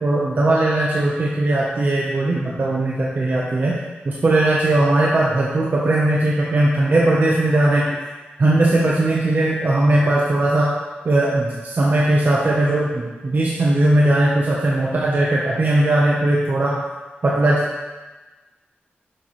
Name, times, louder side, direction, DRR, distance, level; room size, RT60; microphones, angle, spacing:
voice 1, 0.0-3.8 4.0-7.9 8.4-10.7 11.0-16.8 17.2-17.6, right 1 dB, 55° right, -5 dB, 0.9 m, -18 dB
6.4 x 5.8 x 3.2 m, 1.2 s
wide cardioid pair, 90°, 4 cm